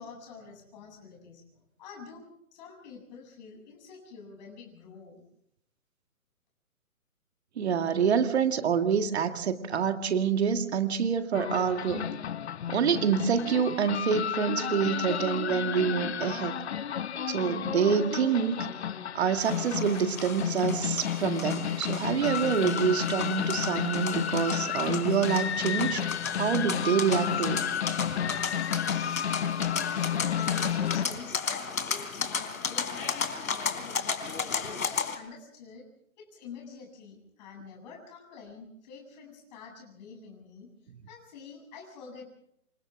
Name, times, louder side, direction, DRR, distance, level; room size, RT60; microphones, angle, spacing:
voice 1, 0.0-5.2 29.5-34.1 34.5-35.9 36.2-40.7 41.1-42.2, left 5 dB, 30° left, 1 dB, 7.8 m, -47 dB
voice 2, 7.6-12.1 12.7-16.5 17.3-18.7 19.1-27.7, right 7 dB, 50° right, 7 dB, 2.1 m, -27 dB
sound 1, 11.3-31.1, left 9 dB, 50° left, 0.9 m, -32 dB
sound 2, 19.4-35.2, left 5 dB, 75° left, 3.7 m, -34 dB
28.5 x 27.5 x 3.6 m, 0.72 s
hypercardioid pair, 155°, 42 cm